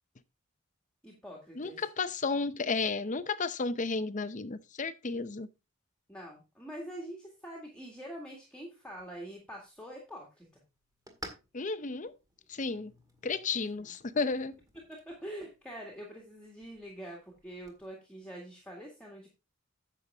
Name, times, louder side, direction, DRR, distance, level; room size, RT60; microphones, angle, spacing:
voice 1, 1.0-1.9 6.1-10.5 13.5-13.9 14.8-19.3, right 1 dB, 5° left, 1.9 m, -45 dB
voice 2, 1.6-5.5 11.5-12.1 12.5-12.9 13.2-14.6, left 4 dB, 35° left, 0.7 m, -33 dB
sound 1, 8.9-17.8, right 1 dB, 20° right, 1.8 m, -54 dB
9.8 x 7.1 x 3.5 m
head